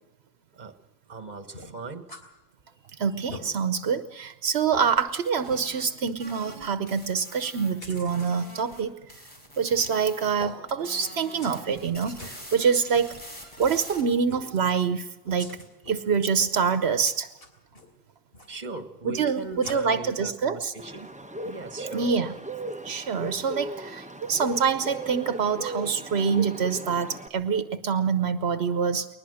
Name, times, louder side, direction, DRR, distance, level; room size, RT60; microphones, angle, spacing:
voice 1, 1.1-2.1 18.5-21.1 21.4-22.1 23.3-23.4, right 3 dB, 45° right, 9 dB, 1.5 m, -39 dB
sound 1, 1.5-2.3 2.7-2.8 3.1-3.5 4.1-4.2 4.7-4.9 5.5-5.7 7.8-8.3 9.7-10.1 10.4-10.6 11.2-11.6 11.9-12.4 13.6-13.8 14.3-14.5 15.2-16.0 16.3-16.7 17.1-17.9 18.3-18.6 19.6-19.7, left 2 dB, 65° left, 3.2 m, -43 dB
voice 2, 3.0-8.9 9.6-13.2 13.6-15.6 15.9-17.3 19.0-20.7 21.9-22.3 22.8-29.1, right 6 dB, 80° right, 11 dB, 1.1 m, -26 dB
sound 2, 5.0-8.8 9.1-10.4 10.7-14.0, equal, 30° left, 4.2 m, -45 dB
Bird, 20.8-27.3, right 1 dB, 5° right, 1.0 m, -37 dB
21.0 x 20.0 x 6.4 m, 1.0 s
omnidirectional pair, 1.1 m